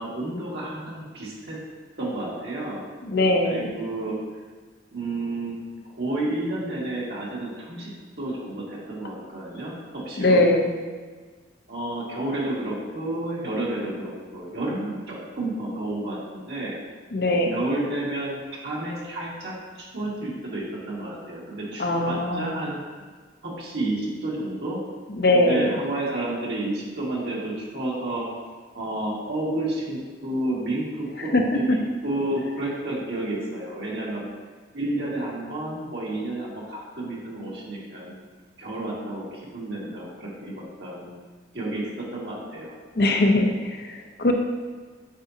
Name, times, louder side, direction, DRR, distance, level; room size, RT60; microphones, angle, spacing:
voice 1, 0.0-1.6 2.0-2.8 3.5-4.2 4.9-5.6 5.9-7.9 8.2-10.4 11.7-16.7 17.5-19.5 19.9-22.8 23.4-24.8 25.3-28.3 28.7-31.8 32.0-34.2 34.7-38.2 38.6-41.2 41.5-42.8 43.0-43.5, right 1 dB, 60° right, -6 dB, 2.1 m, -30 dB
voice 2, 3.0-3.7 10.2-10.7 17.1-17.6 21.8-22.5 25.1-25.8 31.2-31.8 43.0-44.3, left 1 dB, 55° left, 3 dB, 0.7 m, -21 dB
8.3 x 6.1 x 2.8 m, 1.4 s
head